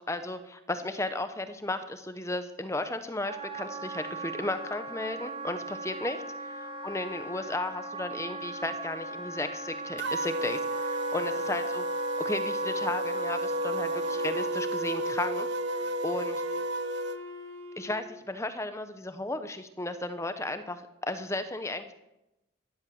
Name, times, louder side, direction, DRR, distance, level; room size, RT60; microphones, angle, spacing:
voice 1, 0.0-11.8 12.2-15.5 16.0-16.4 17.8-21.9, left 2 dB, 15° left, 10 dB, 0.9 m, -34 dB
Wind instrument woodwind instrument, 3.3-14.6, right 2 dB, 25° right, 1.5 m, -39 dB
sound 1, 10.0-17.2, right 1 dB, 55° right, 0.8 m, -32 dB
Wind instrument woodwind instrument 2, 14.0-18.1, right 2 dB, 85° right, 2.1 m, -41 dB
15.5 x 11.5 x 7.1 m, 0.91 s
head